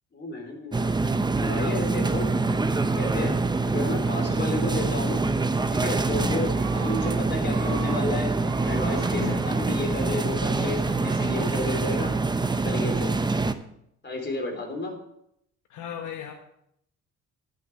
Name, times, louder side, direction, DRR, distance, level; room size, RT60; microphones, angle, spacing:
voice 1, 0.1-1.0 1.3-2.3 2.9-3.3 3.6-5.2 5.7-8.3 8.6-12.1 12.5-13.2 14.0-15.0, left 2 dB, 35° left, 3 dB, 3.5 m, -32 dB
sound 1, 0.7-13.5, right 3 dB, 15° right, 0.7 m, -25 dB
Screaming, 5.4-6.0 6.5-7.1 7.4-8.1 8.4-10.3 10.8-11.5, right 9 dB, 80° right, 1.3 m, -43 dB
voice 2, 6.2-6.5 9.1-9.5 15.7-16.3, left 8 dB, 80° left, 4 dB, 1.1 m, -35 dB
11.0 x 6.6 x 5.9 m, 0.75 s
cardioid pair, 90°, 30 cm